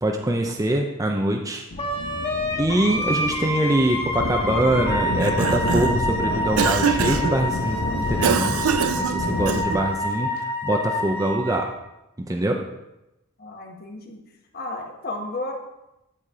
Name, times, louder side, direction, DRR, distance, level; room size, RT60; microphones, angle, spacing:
voice 1, 0.0-1.6 2.6-11.7 12.2-12.6, right 1 dB, 15° right, 2 dB, 0.6 m, -24 dB
sound 1, 1.7-10.1, left 2 dB, 90° left, 1.0 m, -29 dB
Wind instrument woodwind instrument, 1.8-11.6, left 1 dB, 30° left, 1.4 m, -28 dB
Cough, 5.0-6.0 6.6-7.4 8.2-9.9, right 7 dB, 85° right, 0.4 m, -24 dB
voice 2, 13.4-14.2 14.5-15.5, left 2 dB, 50° left, 1 dB, 1.4 m, -33 dB
11.0 x 4.2 x 4.9 m, 0.92 s
head